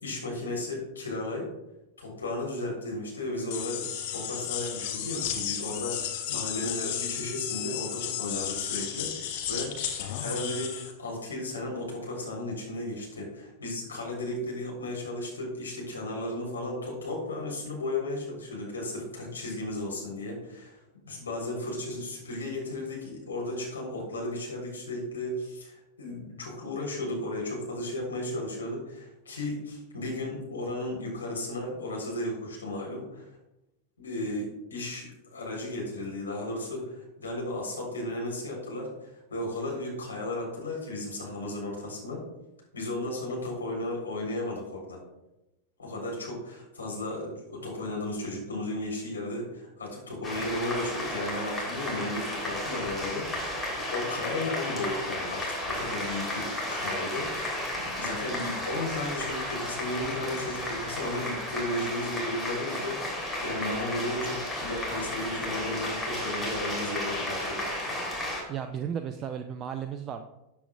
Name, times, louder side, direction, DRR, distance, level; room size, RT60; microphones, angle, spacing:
voice 1, 0.0-1.5 2.0-20.8 21.0-33.4 34.0-42.2 42.7-45.0 45.8-53.5 53.9-67.6, left 1 dB, 75° left, -2 dB, 3.5 m, -34 dB
sound 1, 3.5-10.9, left 9 dB, 50° left, 1.3 m, -33 dB
sound 2, 50.2-68.4, left 1 dB, 10° left, 3.2 m, -33 dB
voice 2, 68.5-70.2, right 8 dB, 30° right, 8 dB, 0.5 m, -34 dB
13.0 x 8.2 x 2.4 m, 0.96 s
figure-of-eight pair, 90°, 0 cm